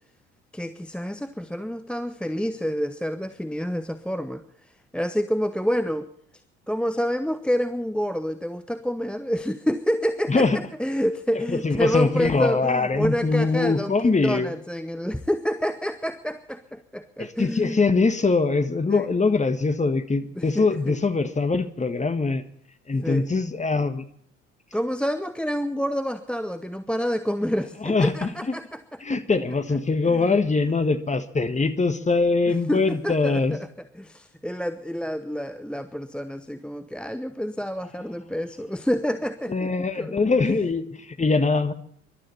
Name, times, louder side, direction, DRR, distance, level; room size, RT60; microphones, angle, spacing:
voice 1, 0.5-4.4 4.9-6.1 6.7-17.8 18.9-19.1 20.4-21.0 23.0-23.3 24.7-28.8 29.1-29.4 30.0-30.4 32.5-33.7 33.9-40.2, equal, ahead, 10 dB, 0.9 m, -28 dB
voice 2, 11.5-14.5 17.2-22.4 22.9-24.0 27.8-28.3 29.0-33.6 39.5-41.7, left 3 dB, 20° left, 9 dB, 1.6 m, -22 dB
24.5 x 12.5 x 4.2 m, 0.64 s
figure-of-eight pair, 60°, 39 cm